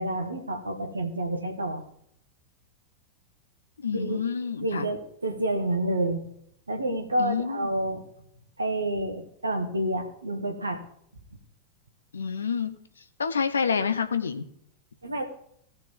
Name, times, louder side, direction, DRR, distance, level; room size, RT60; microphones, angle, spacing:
voice 1, 0.0-1.8 3.9-4.3 4.6-6.2 6.7-8.0 8.6-10.8 15.0-15.2, right 1 dB, 80° right, 5 dB, 1.7 m, -29 dB
voice 2, 3.8-4.9 7.2-7.7 12.1-12.8 13.2-14.5, left 6 dB, 70° left, 10 dB, 0.8 m, -28 dB
18.0 x 6.6 x 3.7 m, 0.69 s
figure-of-eight pair, 90°, 0 cm